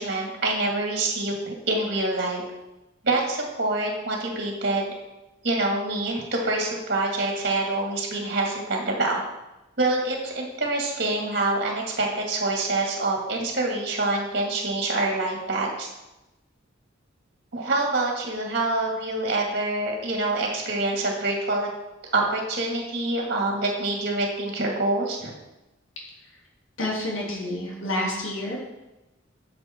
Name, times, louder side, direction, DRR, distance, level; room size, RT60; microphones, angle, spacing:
voice 1, 0.0-2.4 3.0-4.9 5.4-9.2 9.8-15.9 17.5-21.7 22.1-25.3, right 2 dB, 50° right, 0 dB, 2.2 m, -26 dB
voice 2, 26.8-28.6, left 1 dB, 80° left, -3 dB, 3.0 m, -29 dB
13.0 x 6.5 x 4.5 m, 0.98 s
head